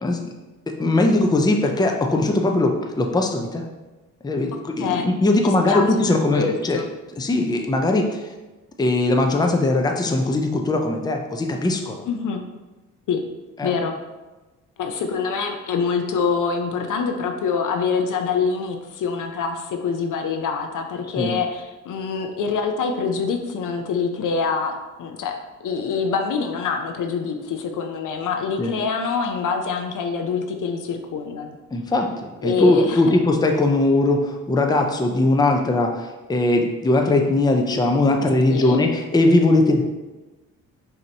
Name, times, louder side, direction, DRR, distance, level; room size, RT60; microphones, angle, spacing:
voice 1, 0.0-0.3 0.7-3.6 4.2-6.8 7.2-8.2 8.8-12.0 13.6-13.7 21.2-21.3 28.6-28.7 31.7-39.8, left 2 dB, 10° left, 3 dB, 0.5 m, -20 dB
voice 2, 6.3-6.9 12.1-12.4 13.1-13.2 13.6-14.0 14.8-24.7 25.0-25.3 25.6-31.6 32.4-33.0 38.5-38.8, left 5 dB, 65° left, 5 dB, 0.6 m, -25 dB
5.1 x 2.9 x 2.8 m, 1.1 s
cardioid pair, 70°, 34 cm